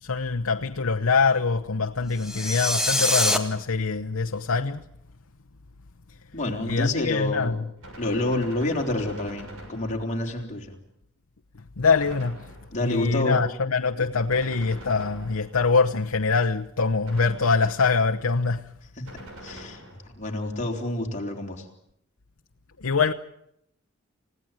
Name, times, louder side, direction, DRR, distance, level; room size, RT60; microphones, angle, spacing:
voice 1, 0.0-4.8 6.6-7.6 11.8-12.5 12.8-18.7 22.8-23.1, left 4 dB, 90° left, 1.0 m, -24 dB
sound 1, 2.2-3.4, left 1 dB, 5° right, 2.0 m, -24 dB
voice 2, 6.3-7.6 8.0-10.8 12.7-13.4 19.0-19.1 19.4-21.7, left 2 dB, 35° left, 3.8 m, -28 dB
Gunshot gunfire, 7.8-10.3 11.9-12.9 14.3-15.7 17.0-17.9 19.1-20.2, right 1 dB, 75° right, 7.0 m, -44 dB
30.0 x 17.0 x 9.1 m
head